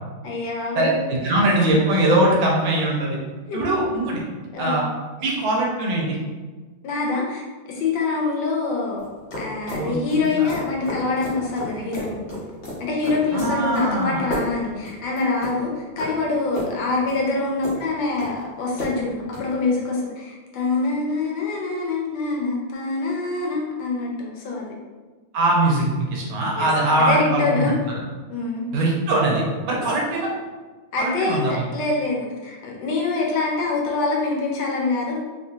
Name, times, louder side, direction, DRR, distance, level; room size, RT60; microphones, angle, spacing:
voice 1, 0.2-0.9 3.5-3.6 4.5-4.8 6.8-7.4 7.7-9.1 9.4-12.2 12.8-24.8 26.6-26.7 27.0-27.7 28.3-28.7 29.7-29.8 30.9-35.2, left 3 dB, 75° left, -2 dB, 1.2 m, -25 dB
voice 2, 0.7-3.2 3.5-4.2 4.6-4.8 5.2-6.2 9.7-10.5 13.3-14.2 25.3-28.0 28.7-30.3 31.0-31.6, right 1 dB, 85° right, -2 dB, 1.6 m, -22 dB
sound 1, 9.0-19.5, left 1 dB, 50° left, 0.9 m, -34 dB
3.5 x 2.7 x 2.4 m, 1.3 s
omnidirectional pair, 2.2 m